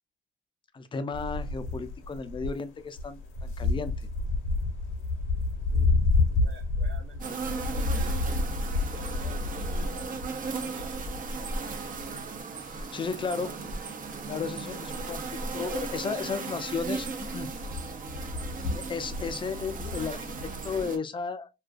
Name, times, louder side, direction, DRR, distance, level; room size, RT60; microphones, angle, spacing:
voice 1, 0.7-3.9 12.7-13.5 14.3-17.5 18.7-20.3 20.6-21.5, left 5 dB, 25° left, 0.4 m, -34 dB
sound 1, 1.1-2.5 2.8-12.4 12.7-12.8 13.1-13.2 13.7-14.0 14.3-16.0 16.3-16.6 16.9-20.7, left 3 dB, 65° left, 0.7 m, -30 dB
voice 2, 5.7-7.4 7.7-11.6, right 3 dB, 60° right, 0.8 m, -51 dB
sound 2, 7.2-21.0, right 4 dB, 40° right, 0.5 m, -36 dB
2.4 x 2.2 x 2.3 m
cardioid pair, 85°, 21 cm